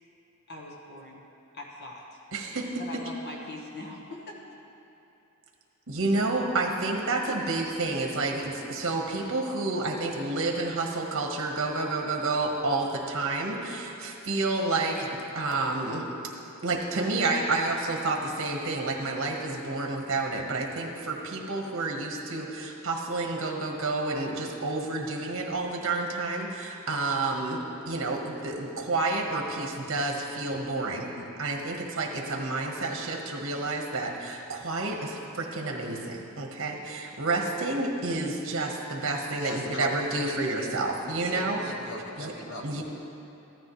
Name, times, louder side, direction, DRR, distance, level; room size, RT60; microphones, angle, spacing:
voice 1, 0.5-1.2 1.5-2.2 2.8-4.4, left 2 dB, 55° left, -1 dB, 1.3 m, -41 dB
voice 2, 2.3-2.8 5.9-15.1 15.3-16.1 16.6-27.6 27.8-41.6 42.2-42.3 42.6-42.8, right 2 dB, 65° right, 1 dB, 1.3 m, -29 dB
voice 3, 39.3-40.8 41.2-42.8, equal, 70° left, -1 dB, 1.6 m, -39 dB
14.5 x 12.5 x 3.2 m, 3.0 s
head